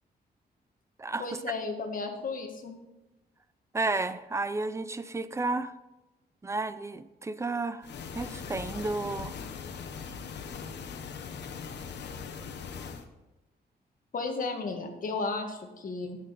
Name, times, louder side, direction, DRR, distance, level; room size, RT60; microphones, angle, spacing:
voice 1, 1.2-2.7 14.1-16.2, left 3 dB, 50° left, 4 dB, 1.5 m, -34 dB
voice 2, 3.7-5.7 6.4-7.9 8.1-9.3, right 3 dB, 15° right, 13 dB, 0.4 m, -32 dB
sound 1, 7.8-13.0, left 6 dB, 85° left, 1.0 m, -40 dB
10.5 x 8.7 x 4.1 m, 1.0 s
wide cardioid pair, 140°, 17 cm